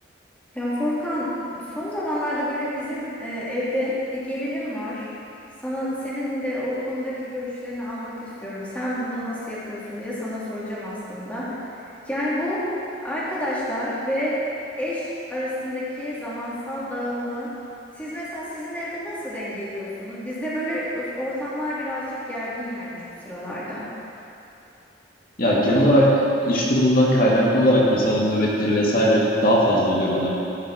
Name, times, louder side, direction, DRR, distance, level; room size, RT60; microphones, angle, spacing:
voice 1, 0.5-5.1 5.6-11.5 11.8-12.6 13.0-14.3 14.8-17.5 17.9-23.9, left 1 dB, 10° left, -9 dB, 3.1 m, -29 dB
voice 2, 25.4-30.3, equal, 55° left, -5 dB, 2.2 m, -19 dB
15.5 x 6.7 x 6.3 m, 2.8 s
head